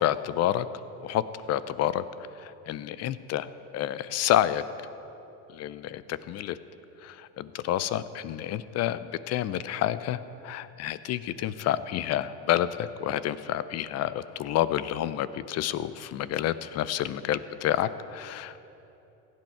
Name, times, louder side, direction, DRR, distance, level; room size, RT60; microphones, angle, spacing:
voice 1, 0.0-0.7 1.0-1.2 1.5-2.0 2.4-3.5 3.7-4.6 5.5-6.6 7.0-18.6, left 12 dB, 40° left, 15 dB, 0.4 m, -29 dB
16.0 x 9.2 x 4.5 m, 3.0 s
supercardioid pair, 110°, 42 cm